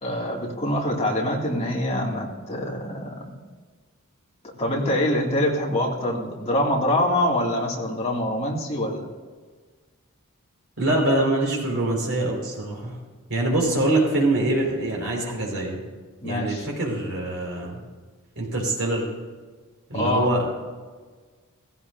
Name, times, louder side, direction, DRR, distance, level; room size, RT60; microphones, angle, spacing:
voice 1, 0.0-3.3 4.5-9.1 16.2-16.7 19.9-20.3, left 1 dB, 30° left, -2 dB, 2.5 m, -25 dB
voice 2, 10.8-13.0 13.3-15.8 16.2-17.8 18.3-19.1 19.9-20.6, right 2 dB, 65° right, -2 dB, 4.9 m, -24 dB
16.5 x 15.5 x 2.7 m, 1.5 s
head